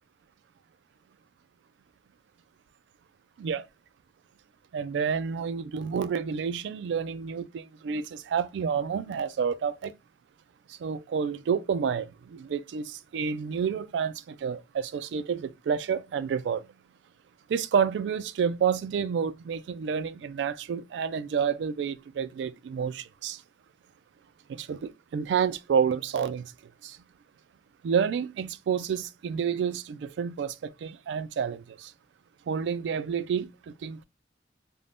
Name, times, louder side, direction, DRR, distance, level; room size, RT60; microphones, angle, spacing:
voice 1, 4.7-9.9 10.7-16.6 17.5-23.4 24.5-26.5 26.8-27.0 27.8-31.9 32.5-34.0, right 7 dB, 85° right, 0.3 m, -29 dB
2.6 x 2.1 x 3.3 m
head